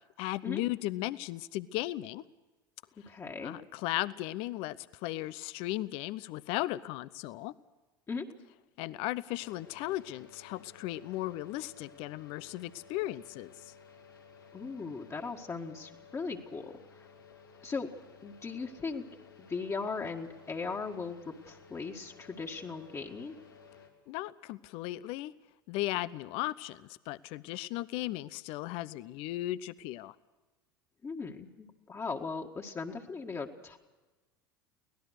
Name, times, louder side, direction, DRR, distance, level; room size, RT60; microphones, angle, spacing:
voice 1, 0.2-2.2 3.0-3.1 3.4-7.5 8.8-13.7 24.1-25.3 25.7-30.2, left 16 dB, 55° left, 18 dB, 0.6 m, -36 dB
voice 2, 3.0-3.5 8.1-8.3 14.5-16.7 17.6-17.9 18.2-19.0 19.4-23.4 31.0-33.8, left 4 dB, 25° left, 2 dB, 1.9 m, -38 dB
sound 1, 9.4-23.9, left 5 dB, 90° left, 3.1 m, -56 dB
24.5 x 18.0 x 6.6 m, 1.2 s
hypercardioid pair, 75°, 11 cm